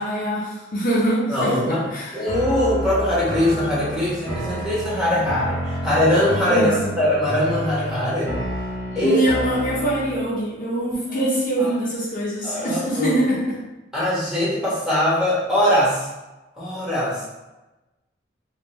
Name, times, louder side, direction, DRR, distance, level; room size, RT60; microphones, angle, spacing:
voice 1, 0.0-2.3 5.1-5.4 6.5-6.9 8.9-13.6, right 1 dB, 45° left, -6 dB, 0.7 m, -24 dB
voice 2, 1.3-1.9 2.1-8.3 8.9-9.2 11.2-11.3 11.6-11.7 12.4-13.2 13.9-16.1 16.6-17.3, left 1 dB, 5° right, -9 dB, 1.1 m, -21 dB
sound 1, 2.2-10.3, equal, 50° right, 1.0 m, -30 dB
3.6 x 2.3 x 3.0 m, 1.1 s
head